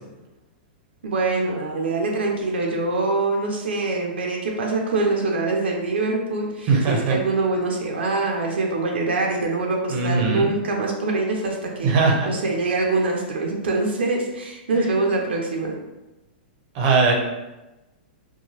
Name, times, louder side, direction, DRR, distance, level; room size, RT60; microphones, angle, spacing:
voice 1, 1.0-11.9 12.2-15.8, right 3 dB, 90° right, 0 dB, 0.5 m, -24 dB
voice 2, 6.7-7.2 9.9-10.5 11.8-12.3 14.8-14.9 16.7-17.1, right 4 dB, 40° right, 0 dB, 0.7 m, -20 dB
2.8 x 2.2 x 3.0 m, 1.0 s
hypercardioid pair, 140°, 6 cm